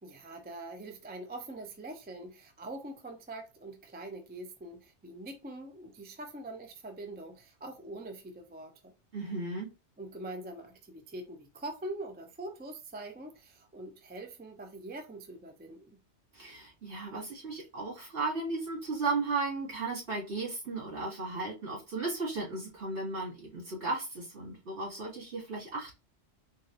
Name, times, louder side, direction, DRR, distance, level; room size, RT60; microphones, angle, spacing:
voice 1, 0.0-8.9 10.0-16.0, right 2 dB, 15° right, 0.4 m, -43 dB
voice 2, 9.1-9.7 16.3-26.0, right 3 dB, 70° right, 2.4 m, -35 dB
4.0 x 3.2 x 2.5 m
omnidirectional pair, 1.2 m